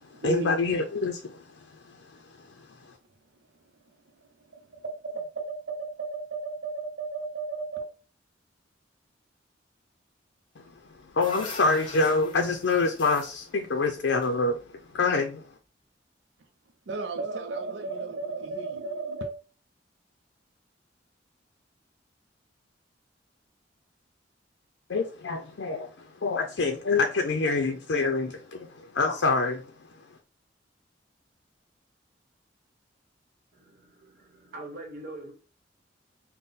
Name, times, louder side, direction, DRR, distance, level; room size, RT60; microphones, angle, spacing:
voice 1, 0.2-1.4 1.9-2.0 11.1-14.7 14.9-15.4 24.9-29.6, left 3 dB, 75° left, 0.5 m, -26 dB
voice 2, 4.8-7.9 16.9-19.3, right 3 dB, 85° right, 0.5 m, -34 dB
sound 1, 10.7-15.0, left 2 dB, 30° left, 0.8 m, -43 dB
voice 3, 33.5-35.3, right 2 dB, 55° right, 1.2 m, -43 dB
3.6 x 2.1 x 4.0 m
head